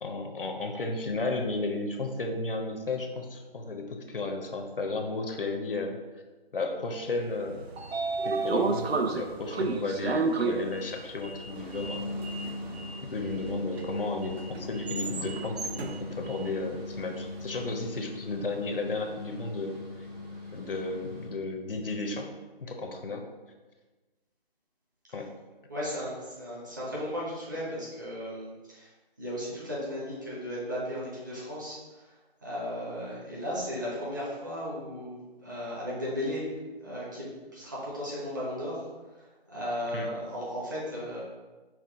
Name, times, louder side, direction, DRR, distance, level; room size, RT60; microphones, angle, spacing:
voice 1, 0.0-6.0 6.5-7.7 8.2-12.1 13.0-19.8 20.5-22.3 22.6-23.2 25.1-25.3 39.9-40.1, left 3 dB, 65° left, 4 dB, 0.7 m, -33 dB
Sliding door, 7.3-17.5, right 3 dB, 80° right, 0.6 m, -33 dB
sound 1, 11.4-21.4, left 2 dB, 40° right, 1.4 m, -40 dB
voice 2, 25.7-28.9 29.2-41.2, equal, 20° right, -7 dB, 0.8 m, -36 dB
5.8 x 2.4 x 3.5 m, 1.2 s
figure-of-eight pair, 160°, 31 cm